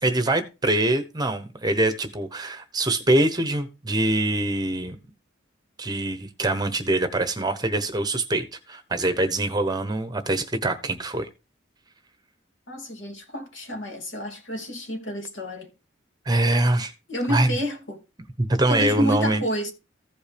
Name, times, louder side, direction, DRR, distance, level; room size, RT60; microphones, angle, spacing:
voice 1, 0.0-5.0 5.8-11.3 16.3-16.9 17.3-17.5 18.4-19.4, right 2 dB, 20° right, 0.9 m, -24 dB
voice 2, 12.7-15.7 17.1-18.0 18.7-19.7, equal, 70° left, 2.9 m, -29 dB
15.0 x 5.2 x 3.4 m
head